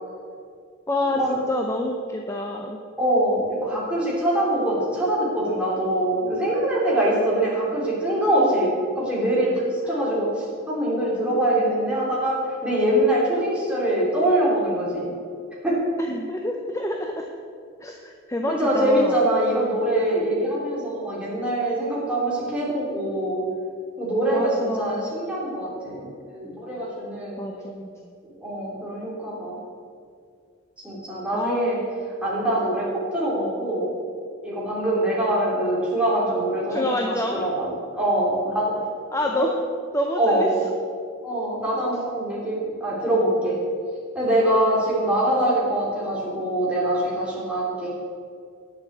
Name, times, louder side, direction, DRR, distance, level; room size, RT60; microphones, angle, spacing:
voice 1, 0.9-1.2 1.5-2.8 9.8-10.0 16.0-17.3 17.8-19.2 24.3-25.1 27.4-27.9 31.3-31.7 36.7-37.4 39.1-39.6 39.9-40.5 44.5-44.6, left 1 dB, 15° left, 2 dB, 0.5 m, -27 dB
voice 2, 3.0-8.7 9.0-10.3 10.7-15.1 15.6-15.8 18.6-23.4 24.0-27.4 28.4-29.6 30.8-31.8 32.2-33.9 34.4-38.7 39.3-39.4 40.2-40.5 41.2-43.6 44.1-47.9, right 1 dB, 5° right, -7 dB, 3.0 m, -23 dB
9.7 x 6.9 x 7.2 m, 2.3 s
head